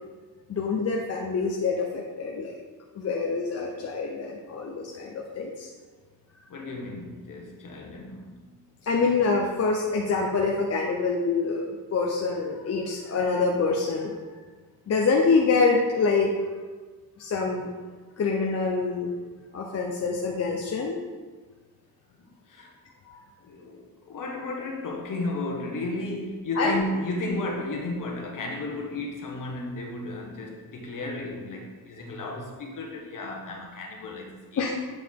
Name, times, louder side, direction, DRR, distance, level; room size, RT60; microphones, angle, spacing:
voice 1, 0.5-2.5 3.0-5.7 8.8-14.1 14.9-16.3 17.2-17.7 18.2-19.1 19.5-21.0 23.1-23.2 26.6-26.7 34.6-34.7, left 4 dB, 45° left, -1 dB, 0.6 m, -26 dB
voice 2, 6.5-8.4 22.2-22.7 23.4-34.7, left 2 dB, 60° left, 0 dB, 1.2 m, -34 dB
7.9 x 4.7 x 3.6 m, 1.4 s
wide cardioid pair, 155°, 36 cm